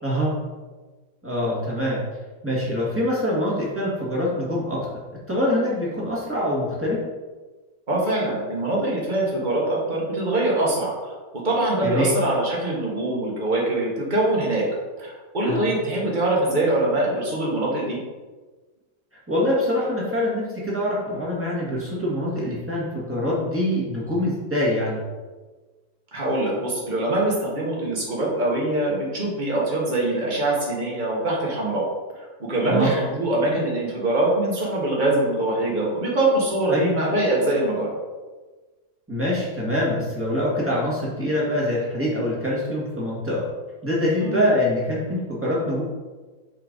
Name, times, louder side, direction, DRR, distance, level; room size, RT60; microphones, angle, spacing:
voice 1, 0.0-0.3 1.2-2.0 2.4-4.8 5.3-7.0 11.8-12.1 15.4-15.7 19.3-25.0 32.6-32.9 36.7-36.9 39.1-43.4 43.8-45.8, left 1 dB, 5° right, -6 dB, 1.6 m, -24 dB
voice 2, 7.9-11.1 11.4-14.7 15.0-18.0 26.1-31.8 32.2-37.9 44.2-44.4, right 2 dB, 25° right, -4 dB, 1.5 m, -23 dB
6.1 x 4.5 x 4.0 m, 1.3 s
omnidirectional pair, 2.0 m